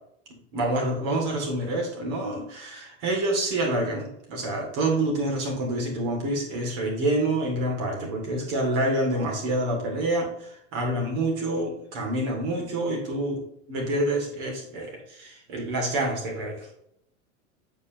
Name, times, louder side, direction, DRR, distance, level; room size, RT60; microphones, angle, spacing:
voice 1, 0.5-13.4 13.7-16.7, right 1 dB, 55° right, -1 dB, 2.9 m, -27 dB
8.2 x 5.5 x 3.1 m, 0.72 s
hypercardioid pair, 95°, 38 cm